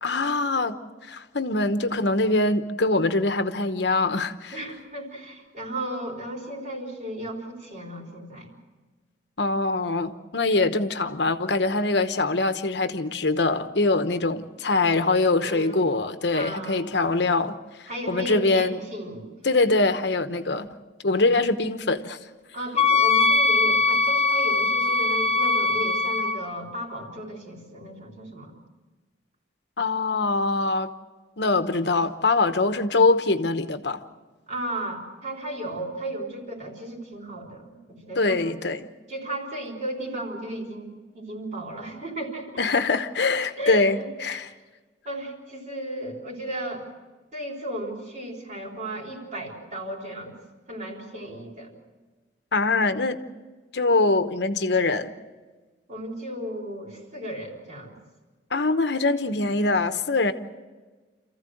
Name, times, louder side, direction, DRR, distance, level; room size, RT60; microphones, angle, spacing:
voice 1, 0.0-0.8 1.1-4.6 9.4-17.5 18.1-18.8 19.4-20.7 21.0-22.2 29.8-30.9 31.4-34.0 38.2-38.9 42.6-44.5 52.5-53.2 53.7-55.1 58.5-60.3, left 3 dB, 65° left, 1.0 m, -23 dB
voice 2, 4.5-8.6 15.4-15.9 16.3-16.8 17.9-19.3 22.5-28.5 34.5-38.5 39.1-42.5 43.6-44.1 44.4-44.5 45.1-46.8 47.3-50.3 50.7-51.7 55.9-58.0, right 1 dB, 40° right, 3.9 m, -35 dB
Wind instrument woodwind instrument, 22.8-26.4, left 3 dB, 35° left, 0.9 m, -21 dB
27.5 x 15.0 x 7.8 m
head